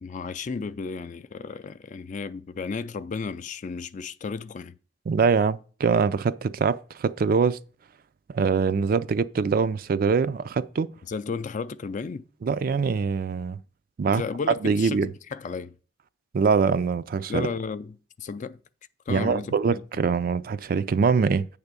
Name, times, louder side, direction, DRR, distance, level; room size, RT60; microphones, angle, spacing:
voice 1, 0.0-4.8 11.1-12.2 14.1-15.8 17.3-18.6 19.1-19.8, left 4 dB, 40° left, 0.4 m, -33 dB
voice 2, 5.1-7.6 8.3-10.9 12.4-13.6 14.0-14.2 14.6-15.1 16.3-17.5 19.1-21.5, right 5 dB, 50° right, 0.3 m, -23 dB
8.7 x 3.5 x 6.7 m
head